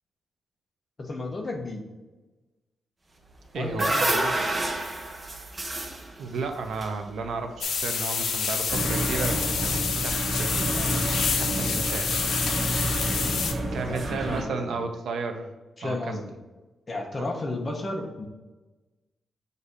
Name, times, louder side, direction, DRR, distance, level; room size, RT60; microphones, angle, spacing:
voice 1, 1.0-1.8 3.5-4.7 13.9-14.7 15.8-16.3 16.9-18.3, left 2 dB, 25° left, 2 dB, 0.9 m, -33 dB
sound 1, 3.3-7.6, right 1 dB, 20° right, 0.8 m, -29 dB
voice 2, 3.5-3.9 6.2-11.0 11.4-12.2 13.7-15.5 15.8-16.2 17.2-17.3, right 4 dB, 90° right, 5 dB, 0.7 m, -33 dB
sound 2, 7.6-13.5, left 5 dB, 75° left, 0.7 m, -28 dB
sound 3, 8.7-14.4, right 1 dB, 55° right, 1.7 m, -29 dB
6.7 x 2.8 x 5.0 m, 1.2 s
wide cardioid pair, 165°, 0 cm